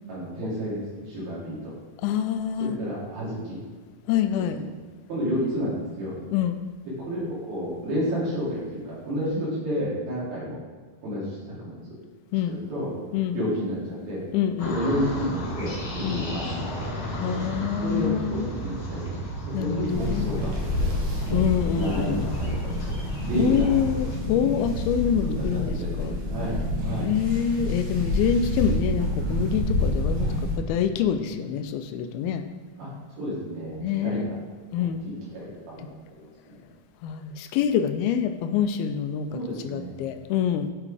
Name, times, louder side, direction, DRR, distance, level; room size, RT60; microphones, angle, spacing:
voice 1, 0.1-0.8 1.1-1.7 2.6-3.6 4.5-4.6 5.1-6.1 7.1-8.6 8.9-10.6 11.0-11.8 12.5-12.9 13.3-14.2 14.6-16.7 17.8-19.2 19.6-20.9 21.7-22.7 23.2-23.8 25.2-26.5 26.8-27.1 32.8-32.9 33.2-34.4 35.0-35.8 36.5-36.6 39.3-39.9, equal, 80° right, -9 dB, 4.6 m, -30 dB
voice 2, 2.0-2.8 4.1-4.6 6.3-6.6 12.3-12.6 13.1-13.4 14.3-14.8 16.0-16.2 17.2-18.4 19.5-20.3 21.3-22.4 23.4-26.2 27.0-32.4 33.8-34.2 34.7-35.0 37.0-40.7, left 9 dB, 90° left, 9 dB, 2.5 m, -26 dB
sound 1, 14.6-24.2, right 1 dB, 40° left, 1.7 m, -34 dB
sound 2, 19.9-30.5, left 1 dB, 55° right, 2.8 m, -28 dB
9.5 x 4.9 x 4.9 m, 1.5 s
omnidirectional pair, 4.3 m